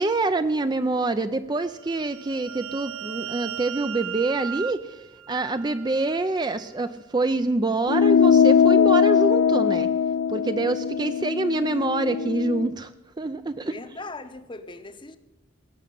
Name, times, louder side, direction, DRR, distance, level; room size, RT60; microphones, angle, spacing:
voice 1, 0.0-5.0 5.3-9.9 10.3-12.9 13.2-13.8, right 2 dB, 20° right, 10 dB, 0.4 m, -26 dB
sound 1, 1.7-6.2, right 10 dB, 90° right, 0.7 m, -37 dB
sound 2, 7.9-12.7, left 7 dB, 80° left, 0.5 m, -20 dB
voice 2, 13.6-15.2, left 3 dB, 25° left, 11 dB, 0.8 m, -39 dB
17.5 x 7.2 x 10.0 m, 1.0 s
head